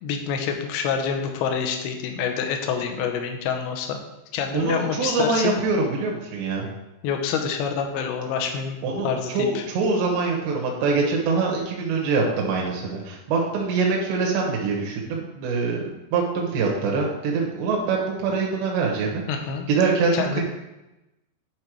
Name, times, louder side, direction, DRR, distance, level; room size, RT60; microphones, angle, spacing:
voice 1, 0.0-4.0 4.3-5.6 7.0-8.8 9.0-9.6 19.3-19.7 20.1-20.4, left 6 dB, 75° left, 4 dB, 2.7 m, -27 dB
voice 2, 4.5-6.7 8.8-19.2 19.7-20.4, right 4 dB, 75° right, -1 dB, 3.3 m, -24 dB
10.5 x 4.2 x 4.7 m, 0.96 s
omnidirectional pair, 5.1 m